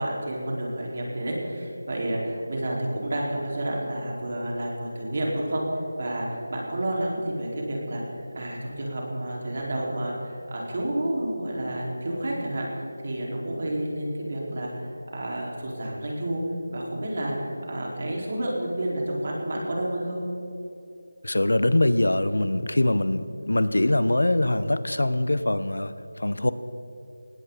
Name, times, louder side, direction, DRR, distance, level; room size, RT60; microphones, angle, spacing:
voice 1, 0.0-5.6 6.0-8.0 8.3-12.7 13.0-16.4 16.7-20.2, right 1 dB, 45° right, -3 dB, 4.7 m, -30 dB
voice 2, 21.2-26.5, left 1 dB, 85° left, 13 dB, 1.0 m, -23 dB
19.0 x 18.0 x 4.2 m, 2.8 s
figure-of-eight pair, 170°, 0 cm